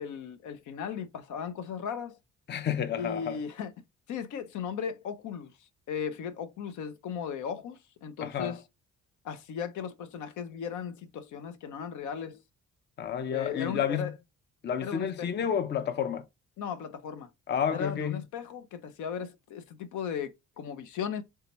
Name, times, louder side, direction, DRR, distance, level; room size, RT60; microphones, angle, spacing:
voice 1, 0.0-2.2 3.0-3.7 4.1-5.5 5.9-8.6 9.2-12.4 13.3-14.1 14.8-15.3 16.6-17.3 17.7-21.2, left 7 dB, 75° left, 0.7 m, -36 dB
voice 2, 2.5-3.4 8.2-8.6 13.0-14.1 14.6-16.2 17.5-18.2, left 8 dB, 35° left, 0.5 m, -30 dB
3.4 x 2.8 x 2.9 m
cardioid pair, 90°, 30 cm